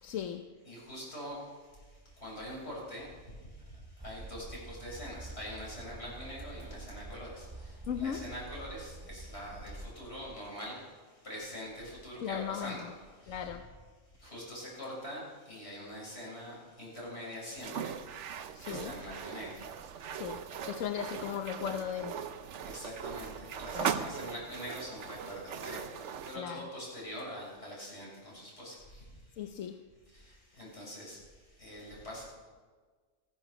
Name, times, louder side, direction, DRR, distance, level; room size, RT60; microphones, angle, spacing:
voice 1, 0.0-0.4 7.8-8.2 12.2-12.9 13.3-13.7 18.5-19.0 20.1-22.2 23.7-24.1 26.4-26.7 29.4-29.8, left 9 dB, 85° left, 7 dB, 1.1 m, -37 dB
voice 2, 0.7-1.4 2.2-3.1 4.0-7.5 7.9-10.8 11.2-12.9 13.3-13.4 14.2-17.9 18.6-19.5 22.7-25.9 26.2-28.7 30.6-31.2 31.6-32.2, equal, 55° left, -5 dB, 7.3 m, -43 dB
sound 1, 4.0-10.0, right 2 dB, 25° right, 0.6 m, -47 dB
sound 2, 17.6-26.4, right 8 dB, 70° right, 1.1 m, -39 dB
15.5 x 15.0 x 5.9 m, 1.5 s
omnidirectional pair, 1.3 m